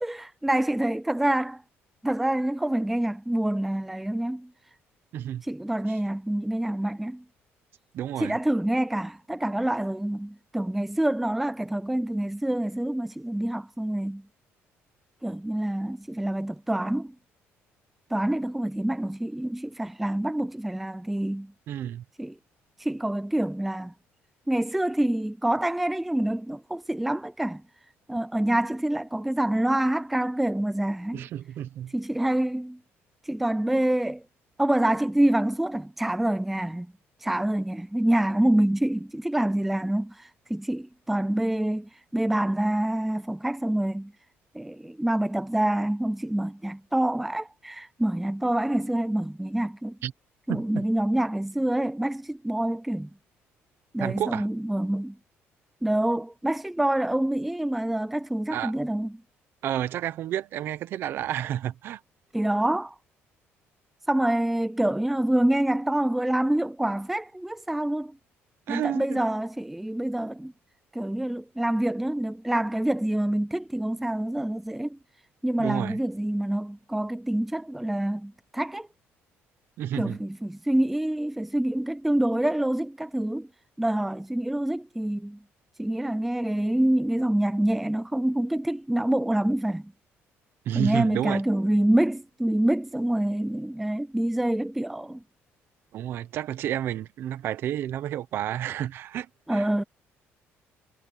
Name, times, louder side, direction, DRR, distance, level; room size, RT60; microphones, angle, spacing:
voice 1, 0.0-1.6 2.0-4.5 5.4-7.2 8.2-14.2 15.2-17.1 18.1-21.5 22.2-22.4 22.8-23.9 24.5-27.6 28.1-31.2 31.9-32.8 33.3-34.2 34.6-36.9 37.2-44.1 44.5-50.0 50.5-53.1 53.9-55.2 55.8-59.1 62.3-63.0 64.1-68.2 68.7-70.5 70.9-75.0 75.4-78.9 79.9-83.5 83.8-85.4 85.8-89.9 90.7-95.2 99.5-99.8, right 1 dB, 5° right, 0.4 m, -26 dB
voice 2, 7.9-8.4 21.7-22.0 31.1-31.9 50.0-50.1 50.5-50.8 54.0-54.5 58.5-58.7 59.6-62.0 68.7-69.2 75.6-76.0 79.8-80.2 90.7-91.4 95.9-99.7, right 11 dB, 50° right, 0.9 m, -30 dB
cardioid pair, 180°, 5 cm